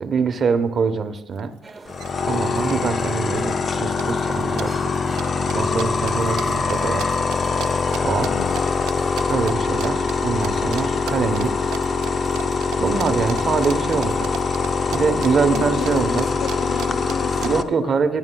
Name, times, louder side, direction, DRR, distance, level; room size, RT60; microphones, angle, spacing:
voice 1, 0.0-1.5 2.3-4.7 5.5-7.1 8.0-8.3 9.3-11.7 12.8-14.3 14.9-16.3 17.4-18.2, right 5 dB, 50° right, 9 dB, 0.9 m, -23 dB
sound 1, 1.4-1.5 1.7-2.1 2.3-3.1 3.4-3.7 4.0-8.6 8.9-9.5 9.8-10.2 10.4-10.8 11.1-15.3 15.5-17.5, right 12 dB, 90° right, 0.5 m, -34 dB
sound 2, 1.6-9.3, right 3 dB, 25° right, 0.8 m, -43 dB
sound 3, 1.9-17.6, left 4 dB, 45° left, 0.6 m, -23 dB
voice 2, 8.3-8.6 15.5-18.0, left 9 dB, 85° left, 15 dB, 0.3 m, -33 dB
14.5 x 9.9 x 2.3 m, 0.94 s
cardioid pair, 95°, 0 cm